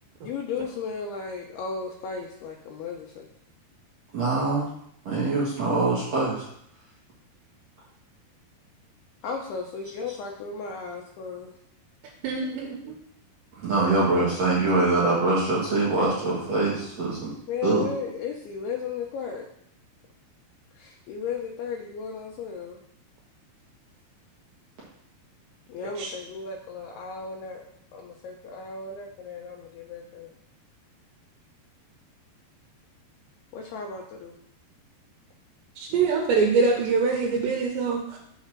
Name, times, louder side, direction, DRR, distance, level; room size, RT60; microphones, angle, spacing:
voice 1, 0.2-3.3 9.2-11.5 17.5-19.5 20.8-22.8 25.7-27.6 27.9-30.3 33.5-34.4, left 5 dB, 80° left, 0 dB, 2.5 m, -35 dB
voice 2, 4.1-4.7 5.1-6.4 13.6-17.3 17.6-17.8, right 3 dB, 60° right, -6 dB, 1.8 m, -24 dB
voice 3, 12.2-12.9 26.0-26.1 35.8-38.2, right 4 dB, 90° right, 0 dB, 3.1 m, -24 dB
6.5 x 4.1 x 6.0 m, 0.70 s
omnidirectional pair, 4.9 m